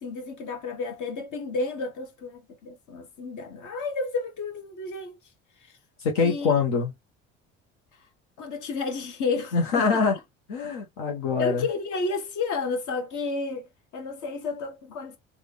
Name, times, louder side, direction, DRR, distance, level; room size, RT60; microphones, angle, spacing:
voice 1, 0.0-5.2 5.6-5.8 6.2-6.5 7.9-8.1 8.4-9.9 10.6-10.7 11.4-15.2, left 3 dB, 55° left, 1.3 m, -32 dB
voice 2, 6.0-6.9 9.5-10.1 10.5-11.7, left 5 dB, 75° left, 1.0 m, -24 dB
3.4 x 2.4 x 3.3 m
hypercardioid pair, 60°, 36 cm